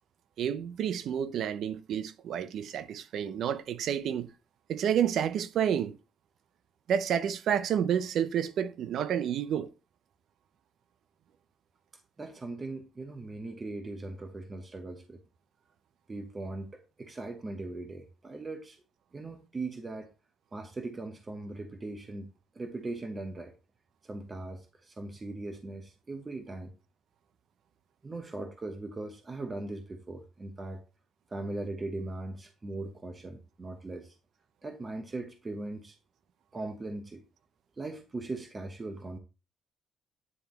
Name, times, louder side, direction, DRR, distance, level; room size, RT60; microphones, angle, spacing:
voice 1, 0.4-4.3 4.7-6.0 6.9-9.7, right 9 dB, 75° right, 0.6 m, -30 dB
voice 2, 12.2-15.2 16.1-18.8 19.1-20.1 20.5-22.3 22.5-23.5 24.0-26.7 28.0-30.8 31.3-34.2 34.6-36.0 36.5-37.2 37.8-39.2, right 2 dB, 30° right, 0.9 m, -39 dB
9.8 x 3.4 x 3.0 m
cardioid pair, 90°, 0 cm